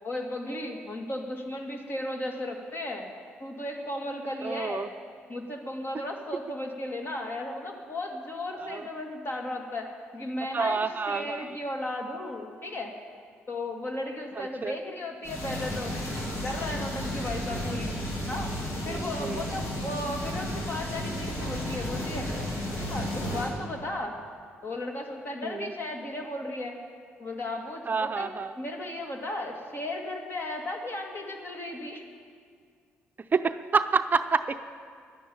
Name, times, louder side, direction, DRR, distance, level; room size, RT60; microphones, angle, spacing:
voice 1, 0.0-3.1 3.4-4.9 5.3-9.9 10.1-12.9 13.5-15.9 16.3-18.0 18.3-18.5 18.8-22.3 22.9-24.1 24.6-26.7 27.2-28.3 28.6-32.0, left 1 dB, 45° left, 2 dB, 2.4 m, -35 dB
voice 2, 4.4-4.9 8.6-8.8 10.5-11.4 14.4-14.7 18.9-19.4 25.5-25.7 27.9-28.5 33.3-34.6, right 5 dB, 35° right, 10 dB, 0.5 m, -28 dB
sound 1, 15.2-23.5, left 1 dB, 65° left, 3.4 m, -33 dB
11.0 x 10.5 x 8.6 m, 2.1 s
supercardioid pair, 60°, 5 cm